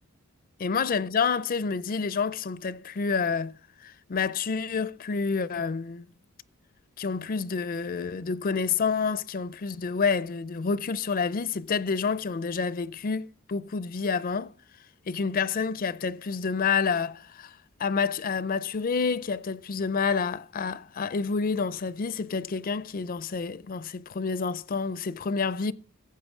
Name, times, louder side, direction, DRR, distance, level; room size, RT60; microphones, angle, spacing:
voice 1, 0.6-3.5 3.8-6.1 7.0-13.2 13.5-14.5 15.1-17.5 17.8-25.7, left 5 dB, 40° left, 0.4 m, -28 dB
15.0 x 8.5 x 3.6 m
head